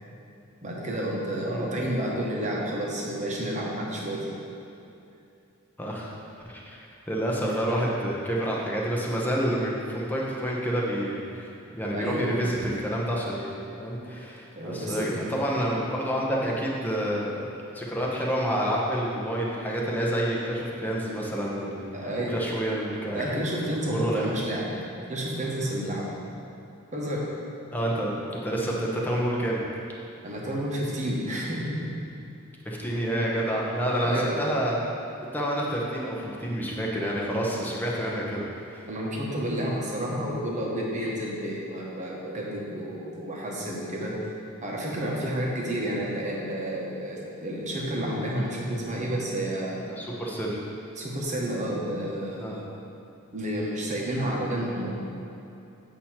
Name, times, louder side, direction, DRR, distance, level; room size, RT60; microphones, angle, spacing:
voice 1, 0.6-4.3 7.4-7.5 11.9-12.4 14.5-15.1 21.9-22.3 23.1-24.7 25.1-26.2 26.9-27.2 30.2-31.9 34.0-34.4 38.9-44.1 44.6-49.8 51.0-52.7 53.3-54.9, right 1 dB, 35° right, -3 dB, 1.1 m, -30 dB
voice 2, 5.8-6.1 6.5-6.8 7.1-17.5 17.7-21.9 22.3-23.2 23.7-24.3 27.7-29.6 32.6-34.8 35.3-38.8 50.0-50.6 52.4-52.6, equal, 10° left, -4 dB, 0.8 m, -28 dB
8.2 x 2.9 x 5.8 m, 2.7 s
head